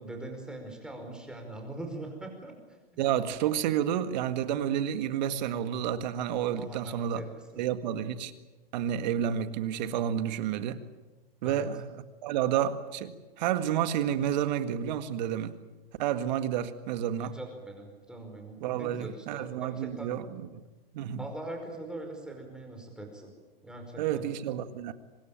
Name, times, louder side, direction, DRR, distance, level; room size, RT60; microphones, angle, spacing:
voice 1, 0.0-2.8 6.5-7.6 11.4-11.7 17.2-20.1 21.2-23.3 23.6-24.3, right 2 dB, 5° right, 3 dB, 5.0 m, -42 dB
voice 2, 3.0-7.2 7.6-8.3 8.7-10.8 11.4-11.9 12.2-15.6 16.0-17.4 18.6-20.2 20.5-20.6 20.9-21.2 24.0-24.9, right 10 dB, 50° right, 10 dB, 1.9 m, -30 dB
25.0 x 20.0 x 9.1 m, 1.2 s
hypercardioid pair, 145°, 30 cm